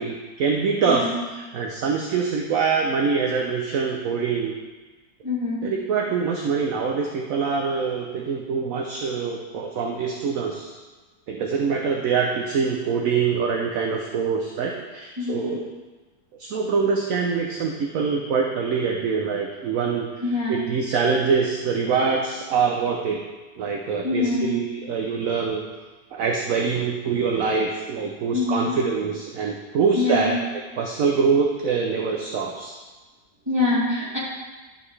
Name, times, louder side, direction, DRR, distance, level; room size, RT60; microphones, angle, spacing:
voice 1, 0.0-4.5 5.6-10.7 11.3-15.7 16.4-20.2 20.5-23.2 23.6-25.6 26.1-30.4 30.8-32.7, right 5 dB, 65° right, 1 dB, 1.0 m, -24 dB
voice 2, 0.8-1.2 5.2-5.7 15.2-15.6 20.2-20.7 24.0-24.5 28.3-28.7 29.9-30.3 33.5-34.2, left 3 dB, 15° right, -10 dB, 2.8 m, -25 dB
11.5 x 5.3 x 3.2 m, 1.3 s
omnidirectional pair, 1.8 m